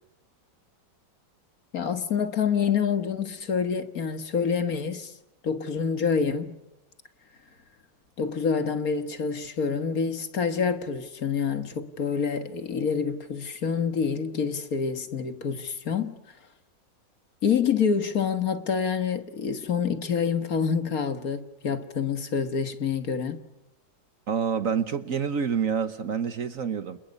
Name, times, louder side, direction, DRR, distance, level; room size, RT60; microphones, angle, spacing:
voice 1, 1.7-5.1 5.4-6.6 8.2-16.2 17.4-23.4, left 6 dB, 55° left, 1.9 m, -27 dB
voice 2, 24.3-27.0, right 6 dB, 50° right, 1.3 m, -27 dB
30.0 x 28.0 x 5.4 m
omnidirectional pair, 1.9 m